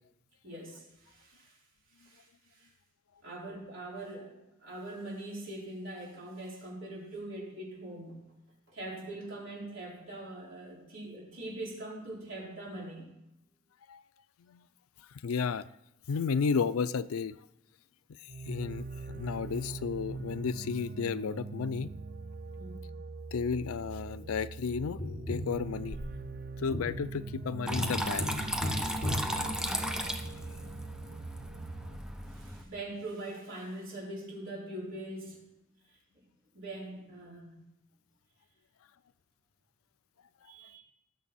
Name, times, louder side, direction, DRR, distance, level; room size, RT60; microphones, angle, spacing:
voice 1, 0.4-1.5 2.0-2.3 2.5-2.7 3.2-8.2 8.7-13.1 22.6-22.8 29.5-29.8 32.3-35.4 36.5-37.5 40.5-40.8, right 1 dB, 65° right, -5 dB, 4.8 m, -42 dB
voice 2, 15.2-15.6 16.1-17.4 18.5-21.9 23.3-25.0 25.3-26.0 26.6-28.3, left 5 dB, 80° left, 16 dB, 0.4 m, -32 dB
sound 1, 18.3-32.0, right 3 dB, 45° right, 0.5 m, -42 dB
Tap, 25.0-30.3 32.9-33.0, left 1 dB, 25° left, 4.6 m, -38 dB
Water tap faucet / Trickle dribble, 27.7-32.6, equal, 5° right, 0.9 m, -35 dB
19.0 x 7.4 x 4.2 m, 0.89 s
head